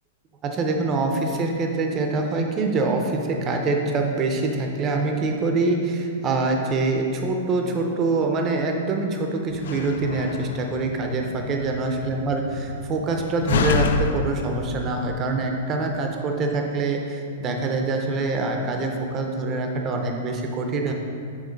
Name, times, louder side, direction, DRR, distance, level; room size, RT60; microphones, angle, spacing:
voice 1, 0.4-20.9, right 3 dB, 20° right, 3 dB, 0.6 m, -25 dB
Slam, 9.5-15.1, left 5 dB, 70° left, 0.4 m, -29 dB
7.4 x 3.6 x 5.1 m, 2.5 s
supercardioid pair, 170°, 0 cm